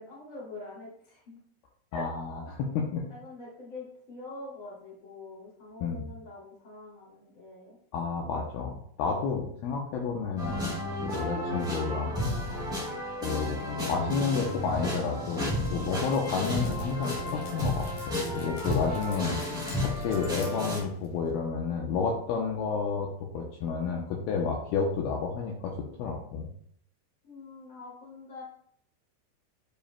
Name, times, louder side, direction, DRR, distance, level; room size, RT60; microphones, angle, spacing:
voice 1, 0.0-1.4 1.9-2.1 3.1-7.8 11.5-11.8 19.2-19.8 27.2-28.4, left 2 dB, 25° left, -5 dB, 2.2 m, -45 dB
voice 2, 1.9-3.0 5.8-6.0 7.9-10.7 11.0-12.5 13.2-13.6 13.9-19.4 19.8-23.1 23.3-25.7 26.0-26.5, left 5 dB, 75° left, 0 dB, 2.5 m, -31 dB
sound 1, 10.4-20.8, left 1 dB, ahead, 1.8 m, -32 dB
Dog, 15.5-21.3, left 2 dB, 55° left, 2.5 m, -48 dB
10.0 x 5.1 x 2.2 m, 0.64 s
omnidirectional pair, 4.8 m